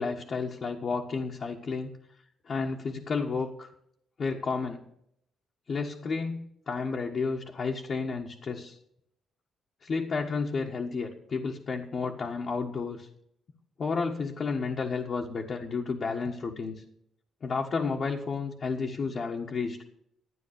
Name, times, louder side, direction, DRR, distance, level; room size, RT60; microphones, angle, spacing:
voice 1, 0.0-1.9 2.4-3.7 4.2-4.8 5.7-8.8 9.8-13.1 13.8-16.7 17.4-19.8, left 4 dB, 50° left, -1 dB, 1.5 m, -31 dB
12.5 x 9.4 x 6.7 m, 0.73 s
cardioid pair, 90°, 0 cm